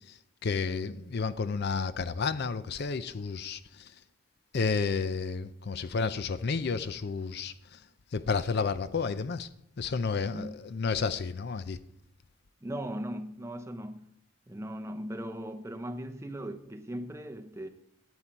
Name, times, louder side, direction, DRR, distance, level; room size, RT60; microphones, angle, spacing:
voice 1, 0.4-3.9 4.5-7.8 8.1-9.5 9.8-11.8, left 5 dB, 45° left, 0.5 m, -31 dB
voice 2, 10.3-10.6 12.6-14.2 14.5-17.7, equal, 10° right, 0.6 m, -38 dB
12.5 x 8.9 x 4.5 m
head